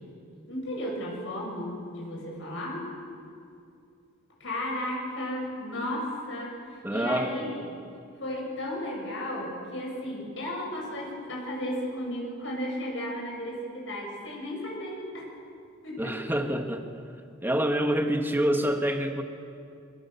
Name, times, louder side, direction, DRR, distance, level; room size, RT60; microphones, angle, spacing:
voice 1, 0.5-2.8 4.4-7.6 8.2-15.3 15.8-16.1, left 1 dB, 70° left, -1 dB, 7.9 m, -34 dB
voice 2, 6.8-7.3 16.0-16.8 17.4-19.2, right 1 dB, 10° right, 4 dB, 1.9 m, -26 dB
26.0 x 24.0 x 7.1 m, 2.4 s
head